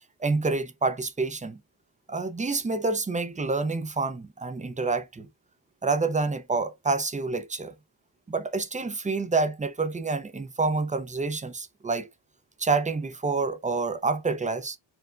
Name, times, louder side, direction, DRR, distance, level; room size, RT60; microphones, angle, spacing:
voice 1, 0.2-1.6 2.1-5.3 5.8-7.7 8.3-12.1 12.6-14.8, right 3 dB, 20° right, 0.3 m, -28 dB
4.5 x 2.1 x 2.3 m
wide cardioid pair, 110°, 47 cm